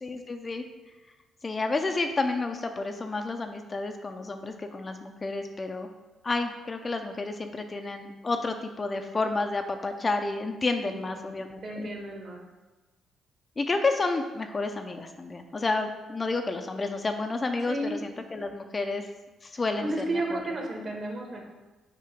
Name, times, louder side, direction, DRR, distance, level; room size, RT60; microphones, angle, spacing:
voice 1, 0.0-0.6 1.4-5.9 6.2-11.9 13.6-19.1 19.4-20.0 20.3-20.4, left 3 dB, 30° left, 5 dB, 0.5 m, -30 dB
voice 2, 10.8-11.3 11.6-12.4 17.7-18.0 19.8-21.5, right 1 dB, 50° right, 0 dB, 1.5 m, -33 dB
6.7 x 2.9 x 5.0 m, 1.2 s
cardioid pair, 90°, 0 cm